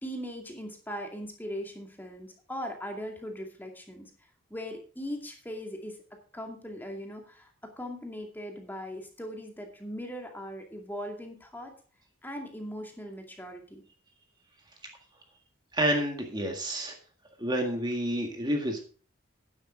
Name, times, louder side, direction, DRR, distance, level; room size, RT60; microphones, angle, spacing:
voice 1, 0.0-4.1 4.5-6.0 6.3-11.8 12.2-13.8, equal, 10° left, 2 dB, 2.2 m, -39 dB
voice 2, 15.7-16.9 17.4-18.8, right 1 dB, 20° right, 2 dB, 1.8 m, -29 dB
12.0 x 9.9 x 3.8 m, 0.41 s
head